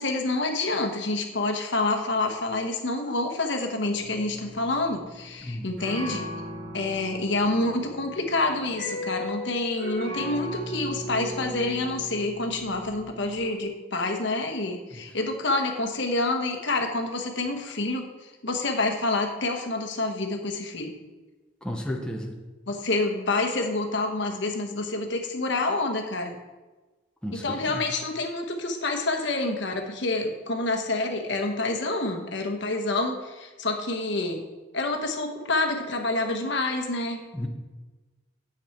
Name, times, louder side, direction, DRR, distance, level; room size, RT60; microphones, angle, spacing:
voice 1, 0.0-6.3 6.7-20.9 22.7-26.4 27.3-34.4 34.7-37.2, left 2 dB, 65° left, 4 dB, 1.2 m, -28 dB
sound 1, 3.9-13.4, equal, 70° right, 2.4 m, -37 dB
voice 2, 21.6-22.3 27.2-27.8 37.3-37.5, left 1 dB, 5° left, 1 dB, 0.9 m, -33 dB
9.2 x 7.2 x 4.4 m, 1.2 s
head